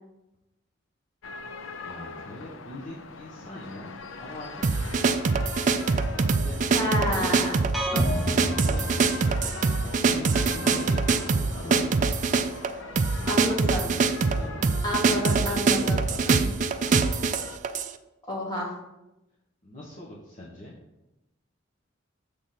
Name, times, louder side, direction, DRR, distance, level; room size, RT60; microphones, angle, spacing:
sound 1, 1.2-17.6, left 4 dB, 85° left, 0.6 m, -42 dB
voice 1, 1.8-5.1 6.1-6.6 7.1-7.4 8.3-9.4 9.7-12.2 12.9-14.7 15.2-16.9 19.6-20.7, left 1 dB, 40° left, -4 dB, 1.1 m, -42 dB
sound 2, 4.6-17.9, right 4 dB, 40° right, 0.4 m, -24 dB
voice 2, 6.7-7.6 13.3-13.8 14.8-16.0 16.3-16.4 18.3-18.7, left 1 dB, 20° left, -3 dB, 1.7 m, -29 dB
sound 3, 7.7-9.7, equal, ahead, 0.8 m, -30 dB
7.1 x 3.5 x 5.9 m, 0.95 s
head